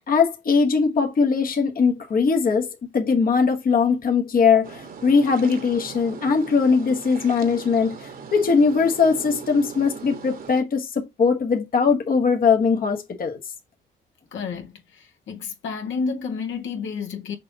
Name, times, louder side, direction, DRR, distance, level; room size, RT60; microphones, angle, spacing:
voice 1, 0.1-13.4, left 5 dB, 45° left, 1.4 m, -20 dB
sound 1, 4.6-10.6, right 6 dB, 45° right, 1.4 m, -39 dB
voice 2, 14.3-17.4, left 5 dB, 70° left, 1.9 m, -30 dB
6.7 x 5.2 x 2.9 m
cardioid pair, 90°, 20 cm